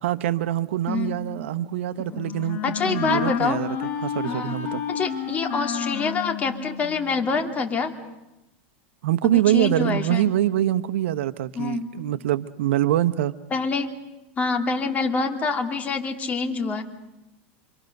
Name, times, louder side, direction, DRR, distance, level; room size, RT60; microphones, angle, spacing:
voice 1, 0.0-3.7 4.0-4.8 9.0-13.3, right 13 dB, 80° right, 11 dB, 0.9 m, -24 dB
Wind instrument woodwind instrument, 1.5-7.4, left 8 dB, 40° left, 4.7 m, -31 dB
voice 2, 2.6-3.6 4.2-4.6 4.9-7.9 9.2-10.3 11.5-11.9 13.5-13.9 14.4-16.8, left 4 dB, 25° left, 4 dB, 2.6 m, -26 dB
26.5 x 25.5 x 6.6 m, 0.95 s
supercardioid pair, 140°, 6 cm